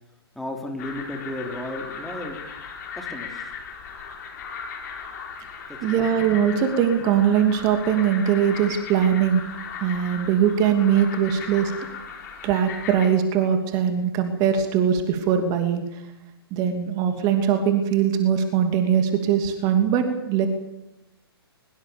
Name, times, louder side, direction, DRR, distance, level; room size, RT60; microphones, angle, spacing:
voice 1, 0.3-2.4 2.9-3.5 5.7-6.1, left 1 dB, ahead, 1 dB, 3.1 m, -34 dB
sound 1, 0.8-13.1, left 6 dB, 45° left, 5.2 m, -37 dB
voice 2, 5.8-9.4 9.8-11.7 12.4-16.0 16.5-20.5, right 8 dB, 30° right, 6 dB, 2.8 m, -21 dB
23.0 x 20.5 x 7.2 m, 0.94 s
figure-of-eight pair, 125°, 13 cm